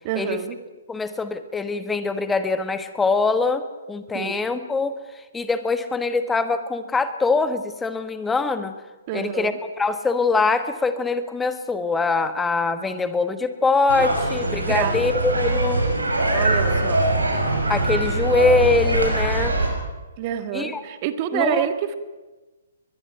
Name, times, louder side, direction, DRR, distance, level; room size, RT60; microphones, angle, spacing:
voice 1, 0.0-0.6 4.1-4.4 9.1-9.6 14.7-15.0 16.3-17.1 20.2-21.9, right 10 dB, 35° right, 9 dB, 1.7 m, -27 dB
voice 2, 0.9-5.0 5.3-8.7 9.1-15.8 17.7-19.5 20.5-20.8 21.3-21.7, left 3 dB, 10° left, 10 dB, 1.3 m, -23 dB
sound 1, 13.9-19.7, right 2 dB, 80° right, 6.1 m, -22 dB
23.0 x 21.0 x 5.8 m, 1.2 s
figure-of-eight pair, 125°, 0 cm